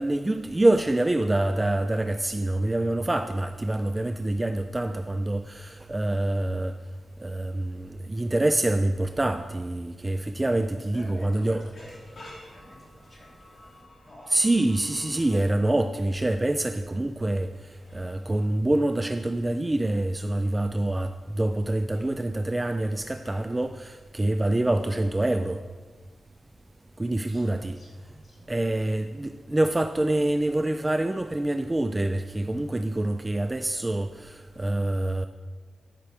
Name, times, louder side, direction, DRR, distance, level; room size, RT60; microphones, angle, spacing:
voice 1, 0.0-6.7 7.2-11.6 14.3-17.5 17.9-25.6 27.0-27.8 28.5-35.3, right 1 dB, 15° right, 9 dB, 0.3 m, -26 dB
voice 2, 10.4-13.8 14.0-14.3 27.2-28.9, left 1 dB, 30° left, -4 dB, 2.9 m, -50 dB
sound 1, 11.7-15.5 17.7-18.5 21.9-22.2 23.2-24.2, left 1 dB, 45° left, 3.1 m, -51 dB
13.0 x 5.9 x 4.8 m, 1.5 s
wide cardioid pair, 120°, 0 cm